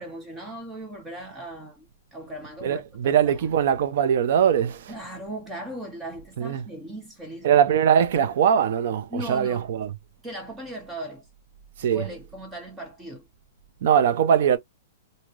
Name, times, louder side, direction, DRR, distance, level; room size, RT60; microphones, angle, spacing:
voice 1, 0.0-3.2 4.9-7.5 9.1-9.7 10.2-11.2 11.9-13.3, right 1 dB, 10° right, 0.6 m, -38 dB
voice 2, 2.6-4.9 6.4-6.6 7.4-9.9 11.8-12.1 13.8-14.6, right 8 dB, 55° right, 0.5 m, -21 dB
3.1 x 2.7 x 2.4 m
hypercardioid pair, 165°, 0 cm